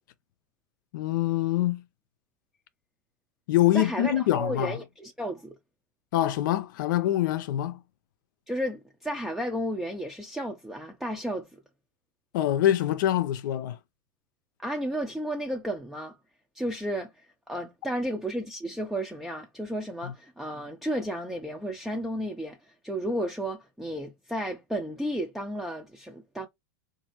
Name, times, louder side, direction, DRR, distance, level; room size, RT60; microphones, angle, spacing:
voice 1, 0.9-1.8 3.5-4.8 6.1-7.8 12.3-13.8 20.0-20.1, left 13 dB, 75° left, 0.6 m, -25 dB
voice 2, 3.7-5.6 8.5-11.6 14.6-16.2 16.5-26.5, equal, ahead, 0.6 m, -33 dB
4.0 x 2.7 x 3.0 m
supercardioid pair, 130°, 11 cm